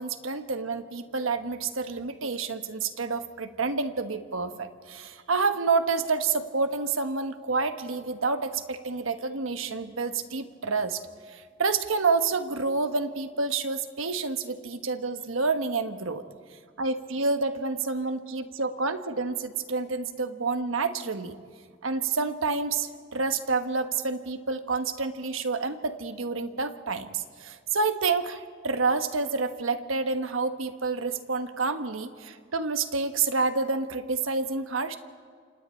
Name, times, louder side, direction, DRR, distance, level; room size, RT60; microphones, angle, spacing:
voice 1, 0.0-11.0 11.3-16.2 16.8-21.4 21.8-35.0, right 4 dB, 85° right, 8 dB, 1.3 m, -28 dB
28.5 x 26.0 x 4.4 m, 2.1 s
head